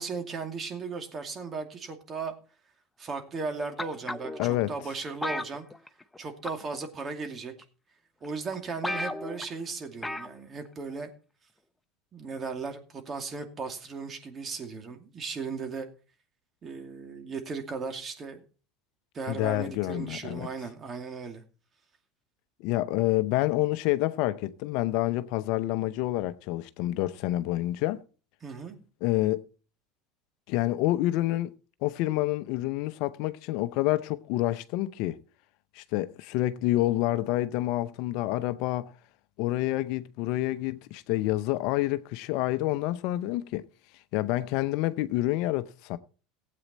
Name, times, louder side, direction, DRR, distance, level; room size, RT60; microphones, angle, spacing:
voice 1, 0.0-2.3 3.0-5.7 6.2-7.5 8.2-11.1 12.1-15.9 16.6-18.4 19.1-21.4 28.4-28.7, right 4 dB, 35° right, 2.5 m, -36 dB
sound 1, 3.8-4.5 5.2-6.2 6.5-6.8 7.6-7.7 8.2-8.3 8.5-8.6 8.8-9.5 10.0-10.4 10.7-10.8, left 1 dB, 10° left, 0.8 m, -34 dB
voice 2, 4.4-4.7 19.3-20.5 22.6-28.0 29.0-29.5 30.5-31.5 31.8-35.2 35.8-38.9 39.4-43.6 44.1-46.0, left 16 dB, 65° left, 0.7 m, -28 dB
16.0 x 8.5 x 4.1 m
hypercardioid pair, 90°, 0 cm